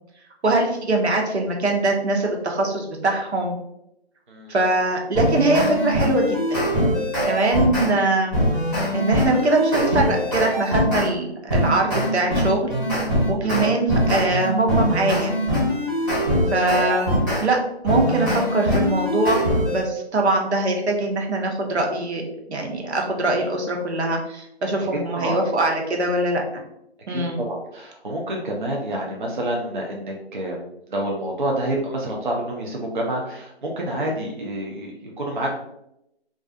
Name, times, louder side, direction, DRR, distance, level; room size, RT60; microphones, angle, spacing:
voice 1, 0.4-3.6 4.5-6.7 7.2-8.4 8.9-12.7 13.3-15.3 16.5-17.6 17.8-26.6 27.1-27.4, right 2 dB, 80° right, 1 dB, 0.7 m, -22 dB
sound 1, 5.1-7.9 8.3-11.1 11.5-17.4 17.8-19.8, equal, 20° right, 0.8 m, -22 dB
voice 2, 13.4-13.7 16.0-16.3 25.1-25.4 27.1-30.6 30.9-35.5, right 1 dB, 50° right, -2 dB, 0.4 m, -28 dB
2.4 x 2.3 x 2.5 m, 0.81 s
figure-of-eight pair, 170°, 33 cm